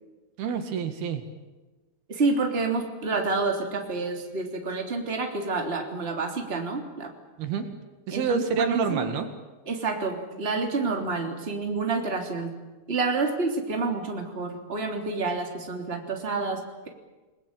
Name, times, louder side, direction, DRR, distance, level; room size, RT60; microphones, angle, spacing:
voice 1, 0.4-1.2 7.4-7.7 8.1-9.3, right 6 dB, 70° right, 7 dB, 3.8 m, -27 dB
voice 2, 2.1-7.1 8.1-9.1 9.7-12.5 12.9-16.9, right 3 dB, 15° right, 2 dB, 3.1 m, -28 dB
29.5 x 20.0 x 9.0 m, 1.2 s
omnidirectional pair, 4.6 m